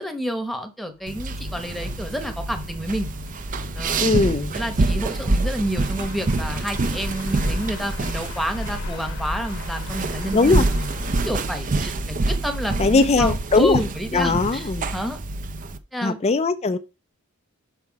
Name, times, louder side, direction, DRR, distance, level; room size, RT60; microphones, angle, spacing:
voice 1, 0.0-3.1 3.7-10.9 11.3-15.2 15.9-16.2, equal, ahead, 1.0 m, -29 dB
sound 1, 1.0-13.7, left 2 dB, 60° left, 1.0 m, -38 dB
sound 2, 1.1-15.8, right 2 dB, 35° right, 0.5 m, -26 dB
voice 2, 4.0-4.6 10.3-10.7 12.8-13.8 14.1-14.9 16.0-16.8, left 3 dB, 30° left, 0.4 m, -19 dB
5.8 x 5.6 x 4.7 m
head